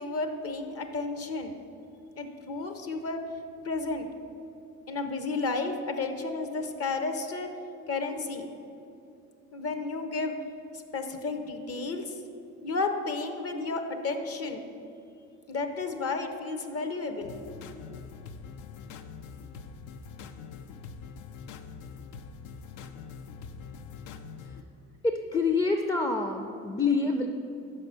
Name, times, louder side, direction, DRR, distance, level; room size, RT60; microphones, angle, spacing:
voice 1, 0.0-1.5 2.2-3.2 3.6-4.1 4.9-7.5 7.9-8.5 9.5-10.4 10.9-12.1 12.6-14.6 15.5-17.3, left 3 dB, 50° left, 7 dB, 0.7 m, -32 dB
sound 1, 17.2-24.6, left 6 dB, 90° left, 0.5 m, -44 dB
voice 2, 25.0-27.3, left 4 dB, 15° left, 4 dB, 0.4 m, -27 dB
5.4 x 5.4 x 6.7 m, 2.7 s
cardioid pair, 90°, 30 cm